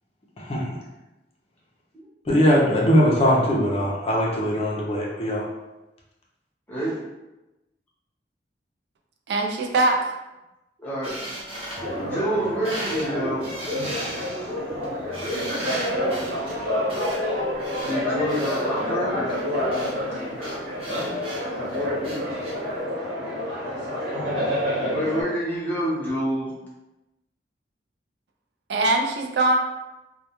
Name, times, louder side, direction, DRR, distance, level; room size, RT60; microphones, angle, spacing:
voice 1, 0.4-0.8 2.3-5.5, equal, 35° left, -3 dB, 0.5 m, -21 dB
voice 2, 6.7-7.0 10.8-11.1 11.9-14.4 17.8-19.2 24.8-26.5, right 1 dB, 10° left, -7 dB, 0.8 m, -28 dB
voice 3, 9.3-10.1 28.7-29.6, right 2 dB, 70° right, 3 dB, 0.3 m, -22 dB
sound 1, 11.0-12.4 12.6-13.1 13.4-18.6 19.3-22.5, right 1 dB, 35° right, 0.9 m, -36 dB
sound 2, 11.7-25.2, left 1 dB, 85° right, 1.1 m, -28 dB
2.2 x 2.2 x 2.9 m, 0.99 s
head